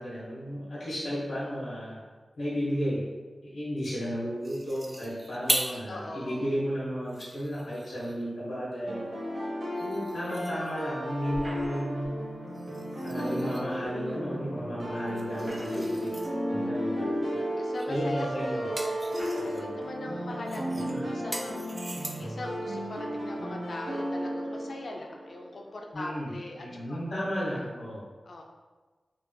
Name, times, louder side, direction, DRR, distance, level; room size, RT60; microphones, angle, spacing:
voice 1, 0.0-2.0 2.4-3.0 3.4-9.0 9.8-12.1 13.0-16.1 16.5-17.5 17.9-18.7 19.4-19.7 20.7-21.0 25.9-26.3 26.6-28.0, equal, 80° left, -9 dB, 1.0 m, -33 dB
sound 1, 4.4-5.9 6.4-6.5 7.0-8.3 9.8-11.0 12.5-13.8 15.0-16.3 17.8-18.0 18.4-19.7 20.5-22.4, right 1 dB, 25° right, 0.3 m, -38 dB
voice 2, 5.7-6.5 15.4-16.3 17.5-20.6 21.0-27.1 27.6-27.7 28.2-28.4, left 2 dB, 65° left, 1 dB, 0.3 m, -41 dB
sound 2, 8.9-25.8, equal, 65° right, 0.8 m, -34 dB
sound 3, 11.3-12.1 13.8-13.9 15.2-16.1 17.0-17.1 18.0-18.1 19.1-19.6, right 1 dB, 45° right, 1.1 m, -44 dB
3.3 x 3.0 x 2.2 m, 1.3 s
wide cardioid pair, 70°, 0 cm